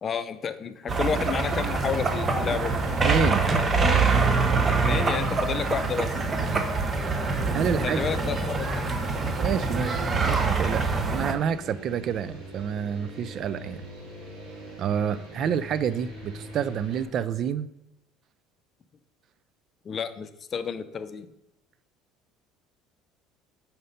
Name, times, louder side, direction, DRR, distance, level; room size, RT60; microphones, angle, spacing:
voice 1, 0.0-2.8 4.7-6.1 7.8-8.9 19.8-21.3, left 6 dB, 40° left, 11 dB, 0.5 m, -31 dB
sound 1, 0.9-11.3, right 4 dB, 30° right, 0.8 m, -25 dB
sound 2, 1.4-17.0, right 1 dB, 75° right, 2.0 m, -41 dB
voice 2, 3.0-3.5 6.5-6.6 7.5-8.1 9.4-13.8 14.8-17.7, right 8 dB, 50° right, 15 dB, 0.3 m, -28 dB
5.5 x 4.3 x 5.1 m, 0.90 s
hypercardioid pair, 80°, 0 cm